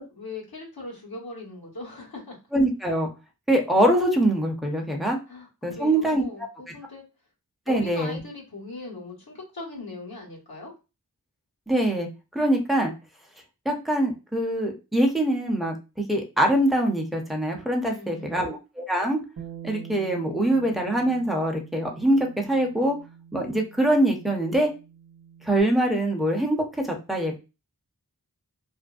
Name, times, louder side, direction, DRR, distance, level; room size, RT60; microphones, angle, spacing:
voice 1, 0.2-2.4 5.3-7.0 7.7-10.7 17.9-18.5, left 2 dB, 85° left, -3 dB, 1.1 m, -39 dB
voice 2, 2.5-3.1 3.5-5.2 5.6-6.2 7.7-8.2 11.7-12.1 12.3-12.9 13.7-15.7 16.1-19.2 19.6-23.0 23.3-24.7 25.4-27.4, right 1 dB, ahead, 1 dB, 0.6 m, -23 dB
Bass guitar, 19.4-25.6, right 8 dB, 70° right, 0.5 m, -45 dB
2.5 x 2.1 x 2.3 m, 0.28 s
wide cardioid pair, 45°, 36 cm